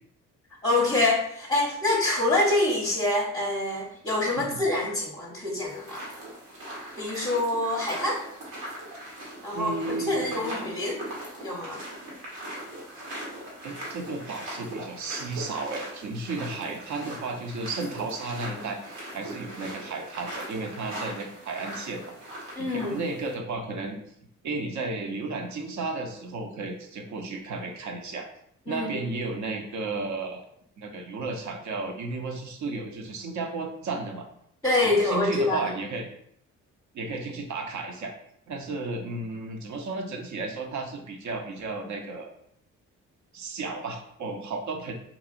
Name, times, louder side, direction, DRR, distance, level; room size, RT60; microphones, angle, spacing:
voice 1, 0.6-6.1 7.0-8.2 9.4-11.0 11.4-11.8 22.6-23.0 28.7-29.0 34.6-35.7, left 2 dB, 10° left, -3 dB, 0.7 m, -26 dB
sound 1, 5.7-23.3, right 1 dB, 85° right, 1.1 m, -40 dB
voice 2, 9.5-10.5 13.6-22.0 22.6-24.0 24.4-28.3 28.7-30.4 30.8-34.3 34.8-36.1 36.9-38.1 38.5-42.3 43.3-44.9, right 3 dB, 55° right, 4 dB, 0.7 m, -33 dB
2.9 x 2.6 x 2.4 m, 0.69 s
supercardioid pair, 55°, 34 cm